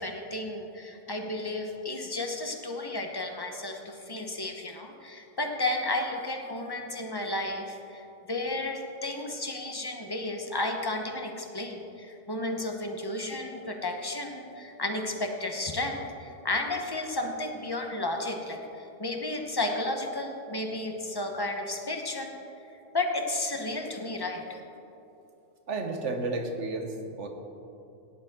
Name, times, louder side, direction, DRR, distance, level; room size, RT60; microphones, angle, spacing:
voice 1, 0.0-22.3 22.9-24.6, left 2 dB, 20° left, 3 dB, 1.0 m, -33 dB
voice 2, 25.7-27.3, right 3 dB, 75° right, 4 dB, 1.5 m, -32 dB
17.0 x 10.5 x 3.7 m, 2.9 s
omnidirectional pair, 1.2 m